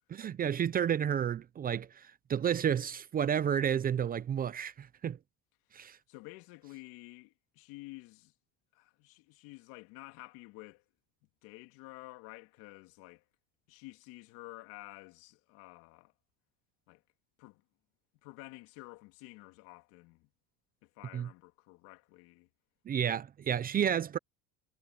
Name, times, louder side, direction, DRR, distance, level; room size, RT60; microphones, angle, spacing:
voice 1, 0.1-1.9 2.3-5.2 5.7-6.0 21.1-21.3 22.9-24.2, right 8 dB, 25° right, 0.6 m, -31 dB
voice 2, 6.1-8.3 8.7-10.8 11.4-13.2 13.7-16.1 16.9-17.0 17.4-17.6 18.2-20.3 20.8-22.5, left 22 dB, 75° left, 2.9 m, -51 dB
cardioid pair, 135°, 35 cm